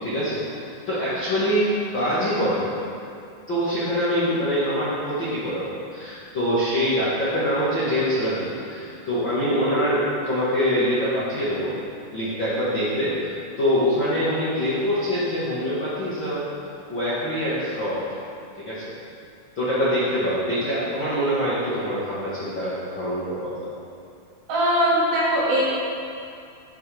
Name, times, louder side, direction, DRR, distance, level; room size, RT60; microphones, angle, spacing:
voice 1, 0.0-2.7 3.5-11.7 12.1-13.3 13.6-16.4 16.9-18.1 18.6-18.9 19.5-23.7, equal, 75° left, -10 dB, 1.0 m, -24 dB
voice 2, 24.5-25.6, equal, 60° right, -8 dB, 3.7 m, -20 dB
11.5 x 7.7 x 3.4 m, 2.5 s
omnidirectional pair, 4.9 m